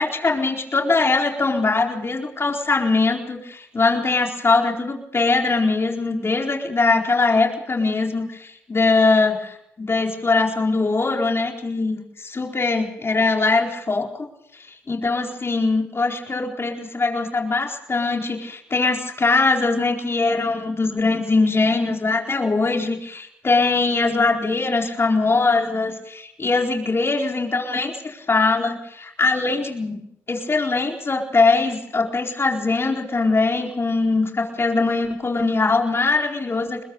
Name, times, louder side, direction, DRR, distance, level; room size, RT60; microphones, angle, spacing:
voice 1, 0.0-12.0 12.3-14.1 14.5-14.6 14.9-30.0 30.3-36.8, left 3 dB, 35° left, 1 dB, 4.4 m, -21 dB
25.0 x 21.5 x 5.4 m, 0.73 s
hypercardioid pair, 45°, 7 cm